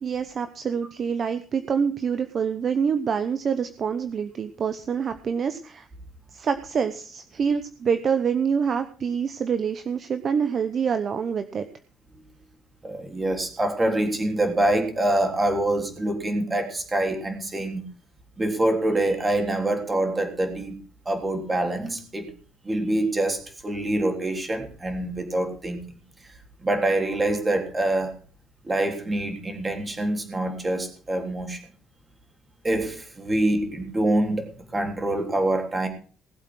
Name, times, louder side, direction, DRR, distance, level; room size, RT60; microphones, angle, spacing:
voice 1, 0.0-5.9 6.3-11.7, right 6 dB, 40° right, 9 dB, 0.9 m, -26 dB
voice 2, 12.8-17.8 18.4-20.8 21.0-22.3 22.6-25.8 26.6-28.1 28.6-31.6 32.6-35.9, right 1 dB, 15° right, 4 dB, 3.5 m, -25 dB
19.5 x 8.1 x 6.2 m, 0.42 s
cardioid pair, 140°, 0 cm